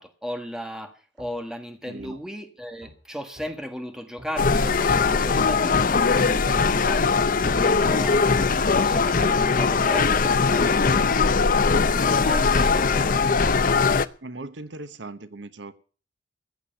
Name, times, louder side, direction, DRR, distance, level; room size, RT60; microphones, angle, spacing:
voice 1, 0.0-7.1 7.4-8.3 8.7-11.3 11.8-13.4, equal, 5° right, 1.6 m, -36 dB
sound 1, 1.2-1.3 2.0-2.1 2.8-3.0 3.4-3.5 4.2-4.3 5.0-5.1 5.5-5.7 6.4-6.5 7.2-7.3 7.7-7.9 8.5-8.7 9.4-9.5, right 1 dB, 45° right, 3.1 m, -47 dB
voice 2, 1.9-2.2 14.2-15.7, right 2 dB, 75° right, 1.0 m, -38 dB
Wind instrument woodwind instrument, 4.3-13.3, left 2 dB, 80° left, 2.4 m, -38 dB
sound 2, 4.4-14.1, left 4 dB, 45° left, 0.6 m, -20 dB
14.5 x 8.2 x 7.9 m
head